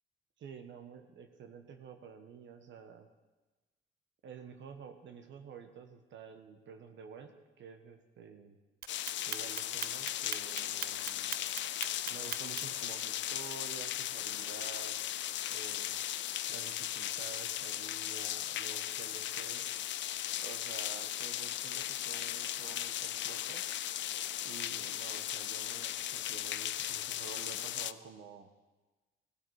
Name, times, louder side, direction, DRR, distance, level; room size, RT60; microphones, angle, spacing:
voice 1, 0.4-3.1 4.2-8.6 9.3-11.4 12.1-15.0 15.5-16.0 16.5-19.6 20.4-23.6 24.4-28.5, right 6 dB, 70° right, 7 dB, 1.3 m, -50 dB
Clock, 8.8-12.8, right 10 dB, 50° right, 0.5 m, -39 dB
sound 1, 8.9-27.9, left 12 dB, 65° left, 0.5 m, -37 dB
17.0 x 12.5 x 4.9 m, 1.2 s
cardioid pair, 90°, 20 cm